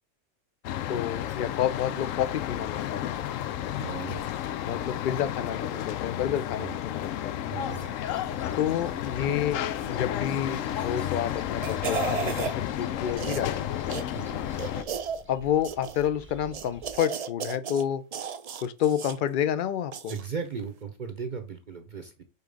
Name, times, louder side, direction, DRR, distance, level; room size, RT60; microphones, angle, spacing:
sound 1, 0.6-14.8, left 11 dB, 85° left, 1.0 m, -32 dB
voice 1, 0.9-3.8 4.6-7.4 8.5-9.6 9.9-13.9 15.3-18.0 18.6-20.1, left 10 dB, 55° left, 0.6 m, -29 dB
voice 2, 3.8-4.2 6.6-6.8 7.5-7.9 14.1-14.5 20.1-22.2, right 5 dB, 45° right, 0.8 m, -37 dB
sound 2, 7.6-17.0, right 2 dB, 10° right, 0.6 m, -49 dB
sound 3, 10.7-11.0 11.4-12.6 13.2-13.5 13.9-14.0 14.6-15.2 15.6-16.1 16.5-17.8 18.1-19.2 19.9-20.3 20.6-20.7, right 7 dB, 70° right, 0.3 m, -34 dB
5.5 x 3.8 x 5.1 m
omnidirectional pair, 1.3 m